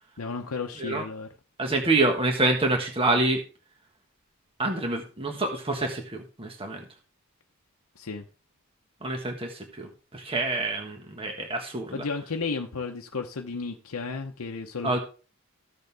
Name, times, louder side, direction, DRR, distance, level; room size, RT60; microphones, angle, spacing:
voice 1, 0.2-1.3 8.0-8.2 11.9-15.0, left 4 dB, 85° left, 0.8 m, -33 dB
voice 2, 1.6-3.4 4.6-6.8 9.0-12.0 14.8-15.0, right 2 dB, 25° right, 1.4 m, -27 dB
14.0 x 6.6 x 3.4 m
head